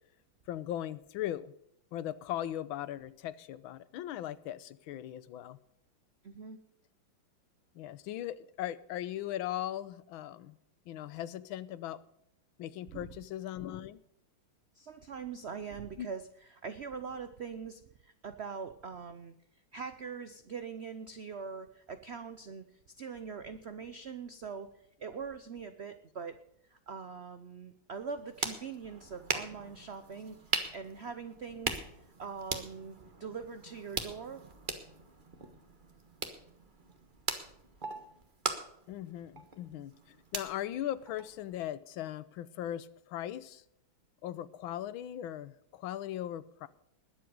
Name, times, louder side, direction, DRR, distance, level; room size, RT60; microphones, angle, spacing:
voice 1, 0.5-1.5 1.9-5.6 7.7-10.6 10.9-12.0 12.6-14.0 16.0-16.1 38.9-43.6 44.2-46.7, left 12 dB, 90° left, 16 dB, 1.5 m, -39 dB
voice 2, 6.2-6.6 12.9-13.1 14.7-19.3 19.7-26.4 26.7-31.8 32.2-34.4, right 5 dB, 85° right, 10 dB, 0.5 m, -43 dB
sound 1, 28.0-41.7, right 3 dB, 30° right, 1.3 m, -40 dB
20.5 x 7.8 x 5.2 m, 0.75 s
omnidirectional pair, 2.2 m